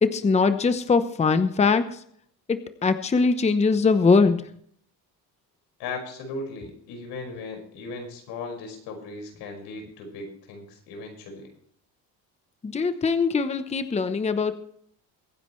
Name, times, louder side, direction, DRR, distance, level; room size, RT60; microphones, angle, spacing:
voice 1, 0.0-2.0 2.5-4.4 12.6-14.5, left 4 dB, 15° left, 10 dB, 0.9 m, -22 dB
voice 2, 5.8-11.5, left 3 dB, 85° left, 3 dB, 5.5 m, -37 dB
23.0 x 10.0 x 3.2 m, 0.64 s
cardioid pair, 130°, 38 cm